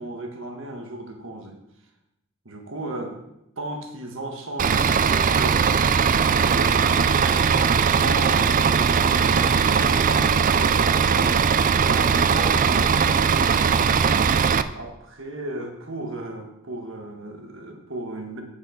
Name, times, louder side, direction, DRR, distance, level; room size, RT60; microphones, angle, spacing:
voice 1, 0.0-1.6 2.4-3.1 3.6-5.9 6.3-13.9 14.7-18.4, right 1 dB, 70° right, 3 dB, 1.6 m, -35 dB
Bus / Idling, 4.6-14.6, right 6 dB, 40° right, 0.4 m, -19 dB
7.9 x 6.9 x 5.8 m, 0.86 s
head